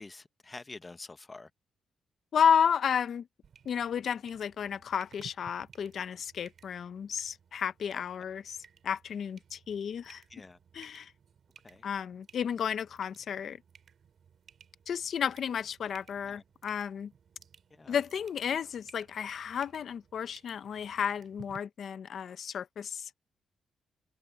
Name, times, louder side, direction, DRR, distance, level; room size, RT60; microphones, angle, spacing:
voice 1, 0.0-1.5 7.9-8.0 10.3-10.6 11.6-11.9 16.2-16.4 17.7-18.0, left 3 dB, 25° left, 0.9 m, -47 dB
voice 2, 2.3-3.3 3.6-8.6 8.8-10.2 10.7-11.1 11.8-13.6 14.9-17.1 17.9-23.1, left 7 dB, 60° left, 0.9 m, -32 dB
sound 1, 3.4-21.6, right 7 dB, 55° right, 3.9 m, -58 dB
cardioid pair, 100°, 0 cm